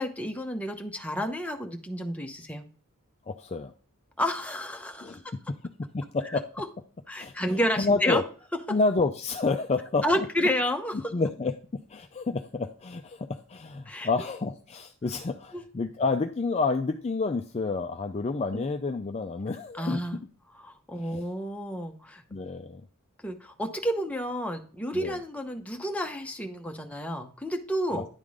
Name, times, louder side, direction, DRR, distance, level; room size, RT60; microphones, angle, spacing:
voice 1, 0.0-2.6 4.2-5.2 6.6-6.7 7.1-8.2 10.0-11.0 13.9-14.1 15.5-15.6 18.5-18.6 19.7-20.2 20.5-22.2 23.2-28.1, equal, 5° left, 3 dB, 0.8 m, -30 dB
voice 2, 3.3-3.7 5.0-5.2 5.5-6.5 7.2-8.2 8.7-10.1 11.1-20.0 21.0-21.2 22.3-22.8 24.9-25.2 27.9-28.2, left 3 dB, 30° left, 6 dB, 0.4 m, -29 dB
10.5 x 3.7 x 4.8 m, 0.41 s
head